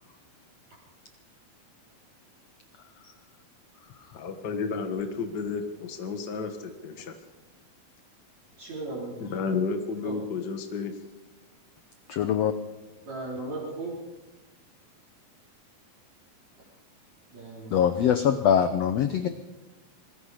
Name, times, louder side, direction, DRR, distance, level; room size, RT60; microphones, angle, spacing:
voice 1, 4.1-7.2 9.2-11.0, left 5 dB, 55° left, 6 dB, 1.2 m, -32 dB
voice 2, 8.6-9.2 10.0-10.1 13.1-14.0 17.3-17.8, right 2 dB, 50° right, -6 dB, 5.2 m, -36 dB
voice 3, 12.1-12.5 17.7-19.3, left 8 dB, 80° left, 9 dB, 1.4 m, -23 dB
26.5 x 21.0 x 5.0 m, 1.1 s
omnidirectional pair, 4.1 m